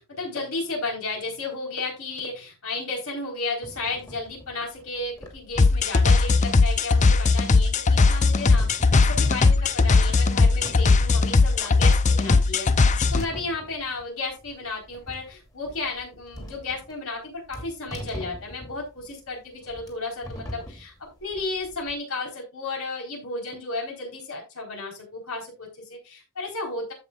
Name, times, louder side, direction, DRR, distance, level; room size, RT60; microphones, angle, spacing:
voice 1, 0.0-12.7 13.1-26.9, left 3 dB, 70° left, -1 dB, 4.1 m, -33 dB
sound 1, 3.6-21.9, equal, 15° left, 2.5 m, -43 dB
sound 2, 5.6-13.2, left 3 dB, 35° left, 0.5 m, -19 dB
15.0 x 5.4 x 2.4 m, 0.29 s
head